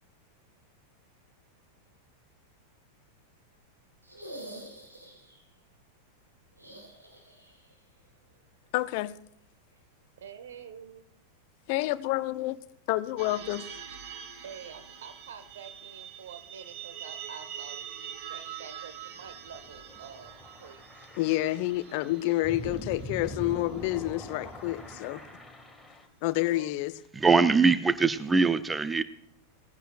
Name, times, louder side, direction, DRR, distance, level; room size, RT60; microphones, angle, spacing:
sound 1, 4.0-5.4 6.5-7.7 8.0-8.1 9.7-9.8, right 1 dB, 80° right, 4.1 m, -46 dB
voice 1, 8.7-9.2 11.7-12.6 12.9-13.6 21.2-25.2 26.2-26.9, left 17 dB, 45° left, 0.6 m, -29 dB
voice 2, 10.2-11.0 14.4-21.1 22.5-22.8 26.5-26.7, right 7 dB, 60° right, 1.5 m, -47 dB
sound 2, 13.2-25.7, right 8 dB, 45° right, 1.6 m, -45 dB
sound 3, 19.2-26.1, left 1 dB, 5° left, 2.0 m, -44 dB
voice 3, 27.1-29.0, right 4 dB, 10° right, 0.7 m, -22 dB
19.0 x 16.0 x 2.5 m
figure-of-eight pair, 90°, 0 cm